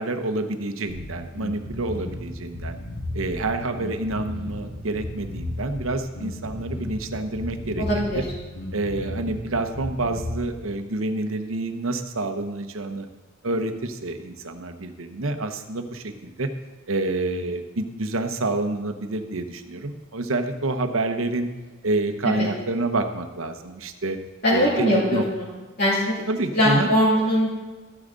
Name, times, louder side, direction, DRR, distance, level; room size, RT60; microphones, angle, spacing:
voice 1, 0.0-2.8 3.1-8.2 8.7-13.1 13.4-16.5 16.9-21.5 21.8-24.2 24.5-25.2 26.3-26.9, right 2 dB, 80° right, 7 dB, 0.9 m, -28 dB
Bass guitar, 0.9-10.5, left 1 dB, 65° left, 3.8 m, -34 dB
voice 2, 7.8-8.3 22.2-22.5 24.4-25.5 25.8-26.2 26.5-27.5, equal, 50° left, -8 dB, 2.6 m, -21 dB
13.0 x 9.8 x 3.9 m, 1.3 s
head